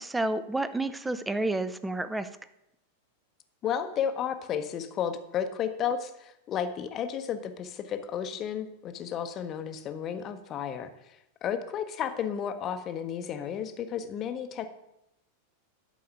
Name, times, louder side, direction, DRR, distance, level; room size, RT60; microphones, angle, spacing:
voice 1, 0.0-2.3, right 2 dB, 5° right, 12 dB, 0.5 m, -30 dB
voice 2, 3.6-14.7, left 8 dB, 30° left, 9 dB, 0.8 m, -33 dB
11.5 x 4.7 x 5.5 m, 0.83 s
figure-of-eight pair, 90°, 0 cm